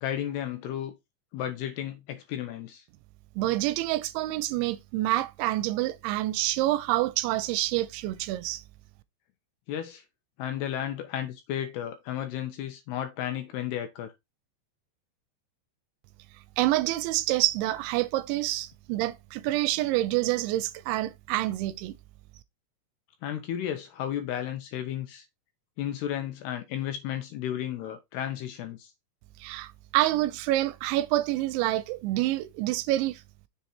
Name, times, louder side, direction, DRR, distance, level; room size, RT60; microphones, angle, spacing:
voice 1, 0.0-0.9 1.3-2.8 9.7-10.0 10.4-14.1 23.2-25.2 25.8-28.9, left 10 dB, 75° left, 2.6 m, -33 dB
voice 2, 3.4-8.6 16.6-21.9 29.4-33.2, right 16 dB, 85° right, 2.9 m, -27 dB
7.0 x 3.9 x 4.4 m
omnidirectional pair, 5.3 m